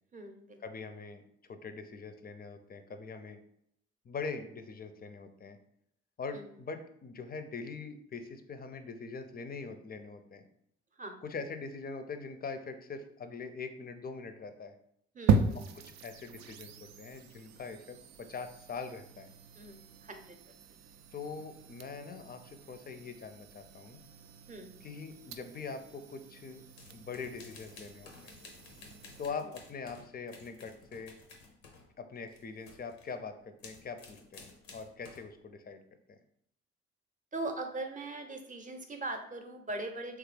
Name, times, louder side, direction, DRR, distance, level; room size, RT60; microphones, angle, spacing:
voice 1, 0.1-0.6 6.3-6.6 10.9-11.2 15.1-15.7 19.5-20.4 24.5-24.8 29.4-29.5 37.3-40.2, right 2 dB, 25° right, 5 dB, 0.7 m, -41 dB
voice 2, 0.6-1.2 1.5-3.4 4.1-5.6 6.2-10.5 11.2-14.7 15.7-19.3 21.1-24.0 24.8-26.6 26.9-28.4 29.2-31.2 32.0-35.8 36.1-36.2, left 4 dB, 30° left, 8 dB, 0.5 m, -43 dB
sound 1, 15.3-29.3, right 5 dB, 60° right, 0.4 m, -37 dB
sound 2, 26.8-31.9 32.2-33.1 33.6-35.3, left 4 dB, 85° left, 0.6 m, -54 dB
3.3 x 2.3 x 3.2 m, 0.71 s
hypercardioid pair, 45°, 30 cm